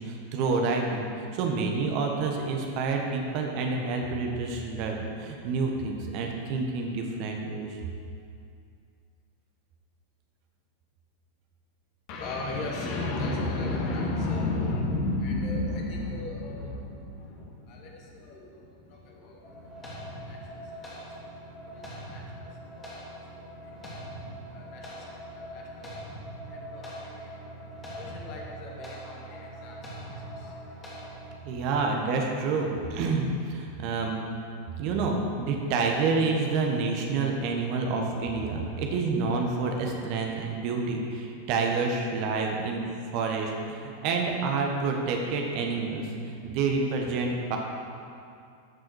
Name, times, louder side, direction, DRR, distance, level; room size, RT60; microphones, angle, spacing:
voice 1, 0.0-7.8 31.4-34.2 34.8-42.8 43.1-47.6, right 4 dB, 45° right, 1 dB, 1.4 m, -28 dB
voice 2, 12.1-22.5 22.8-26.0 26.5-31.2 31.5-31.6, left 2 dB, 45° left, -1 dB, 2.0 m, -35 dB
sound 1, 19.4-31.4, right 1 dB, 15° left, 2.9 m, -42 dB
13.5 x 6.2 x 4.8 m, 2.5 s
figure-of-eight pair, 90°, 0 cm